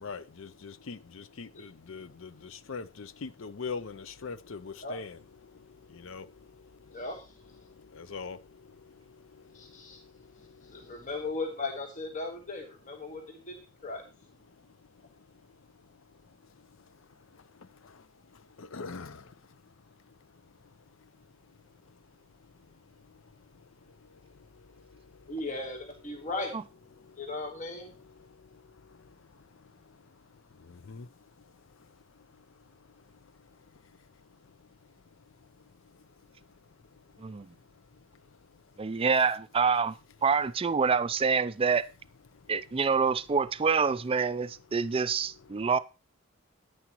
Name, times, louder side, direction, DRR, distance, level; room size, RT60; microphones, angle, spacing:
voice 1, 0.0-2.3 2.7-5.2 6.0-6.3 8.0-8.4 18.6-19.1 30.9-31.0, left 4 dB, 65° left, 0.6 m, -40 dB
voice 2, 6.9-7.3 9.5-10.0 10.6-13.6 13.8-14.0 25.3-26.5 27.2-27.9, left 2 dB, 35° left, 1.3 m, -37 dB
voice 3, 38.8-39.9 40.2-41.9 42.5-45.8, right 5 dB, 25° right, 0.4 m, -26 dB
9.9 x 9.3 x 3.0 m
head